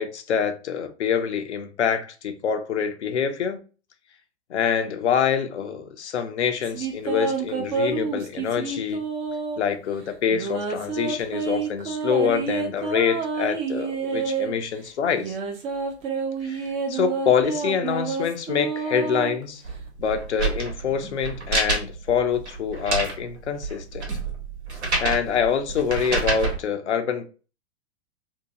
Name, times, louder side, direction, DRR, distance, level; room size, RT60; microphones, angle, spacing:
voice 1, 0.0-3.6 4.5-9.0 9.6-15.4 16.4-19.6 20.0-24.1 25.0-27.3, left 7 dB, 80° left, 0.6 m, -25 dB
sound 1, 6.6-9.7 10.3-14.5 15.1-19.8, right 5 dB, 20° right, 0.3 m, -28 dB
sound 2, 19.6-26.6, right 3 dB, 80° right, 1.0 m, -28 dB
2.7 x 2.2 x 2.7 m
figure-of-eight pair, 105°, 34 cm